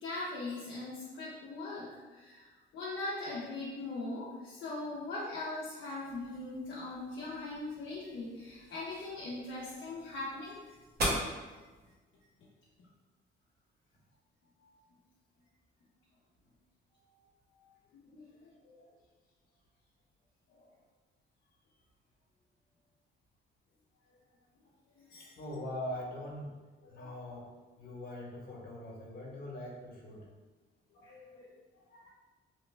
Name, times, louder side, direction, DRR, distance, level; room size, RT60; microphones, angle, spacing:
voice 1, 0.0-10.7 11.5-11.6 18.0-18.9 20.6-20.7 25.0-25.3 26.8-27.1 30.9-31.5 31.9-32.1, left 2 dB, 65° left, -7 dB, 0.6 m, -41 dB
sound 1, 6.0-12.0, equal, 55° right, 1.0 m, -41 dB
voice 2, 25.4-26.6 26.9-27.5 27.8-30.3, left 1 dB, 50° left, -3 dB, 1.1 m, -42 dB
3.0 x 2.1 x 3.2 m, 1.3 s
cardioid pair, 90°, 20 cm